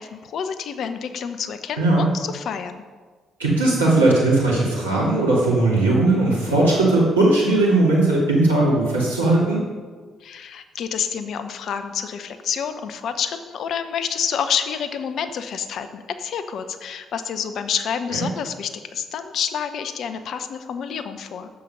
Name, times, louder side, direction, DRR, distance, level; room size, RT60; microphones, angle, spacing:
voice 1, 0.0-2.8 10.2-21.5, left 7 dB, 60° left, 9 dB, 0.8 m, -28 dB
voice 2, 1.8-2.1 3.4-9.6 18.1-18.2, right 2 dB, 90° right, -5 dB, 2.5 m, -18 dB
9.7 x 7.6 x 5.5 m, 1.4 s
hypercardioid pair, 45°, 0 cm